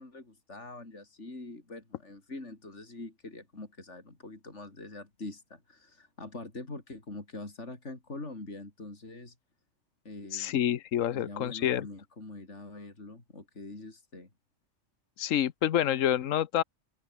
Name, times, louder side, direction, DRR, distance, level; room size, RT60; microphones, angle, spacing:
voice 1, 0.0-9.3 10.0-10.6 11.1-14.3, left 2 dB, 60° left, 4.9 m, -44 dB
voice 2, 10.3-11.9 15.2-16.6, left 11 dB, 75° left, 1.2 m, -28 dB
open air
omnidirectional pair, 1.4 m